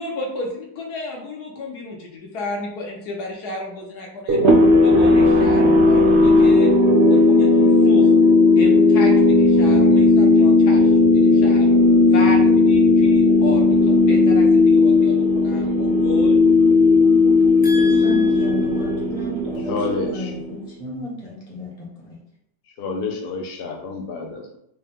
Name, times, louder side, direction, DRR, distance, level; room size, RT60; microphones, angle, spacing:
voice 1, 0.0-4.4 4.8-6.7 7.0-8.1 8.6-11.8 12.1-16.4, left 2 dB, 65° left, 0 dB, 1.4 m, -32 dB
sound 1, 4.3-20.6, left 3 dB, 90° right, 0.6 m, -15 dB
voice 2, 17.6-22.2, left 1 dB, 20° left, -4 dB, 1.2 m, -33 dB
voice 3, 19.7-20.3 22.8-24.6, left 3 dB, 90° left, 2 dB, 0.5 m, -28 dB
4.8 x 2.3 x 3.5 m, 0.73 s
omnidirectional pair, 1.9 m